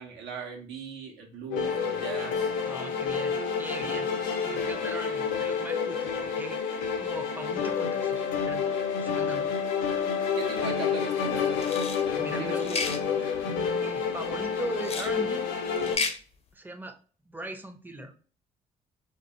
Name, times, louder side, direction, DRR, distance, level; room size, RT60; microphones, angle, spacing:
voice 1, 0.0-2.5 10.4-11.7 12.4-12.9, right 5 dB, 70° right, 1 dB, 0.7 m, -39 dB
sound 1, 1.5-16.0, left 6 dB, 80° left, 0.6 m, -29 dB
voice 2, 2.6-4.1 4.4-8.6 9.0-9.5 12.2-12.8 13.2-15.5 16.5-17.0 17.3-18.3, right 1 dB, 10° right, 6 dB, 0.6 m, -40 dB
sound 2, 11.6-12.0 12.6-13.0 14.8-15.1 15.8-16.2, left 4 dB, 35° left, 0.5 m, -31 dB
2.3 x 2.2 x 2.8 m, 0.39 s
hypercardioid pair, 45°, 19 cm